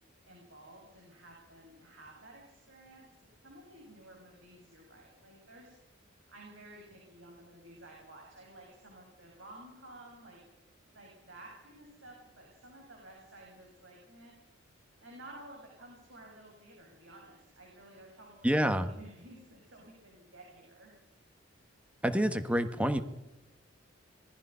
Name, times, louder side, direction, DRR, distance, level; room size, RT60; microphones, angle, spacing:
voice 1, 0.2-3.1 3.4-5.7 6.3-10.4 10.9-14.3 15.0-20.9, right 1 dB, 70° right, -1 dB, 7.1 m, -53 dB
voice 2, 18.4-18.9 22.0-23.0, equal, 5° right, 9 dB, 1.3 m, -27 dB
26.5 x 20.5 x 5.7 m, 0.93 s
head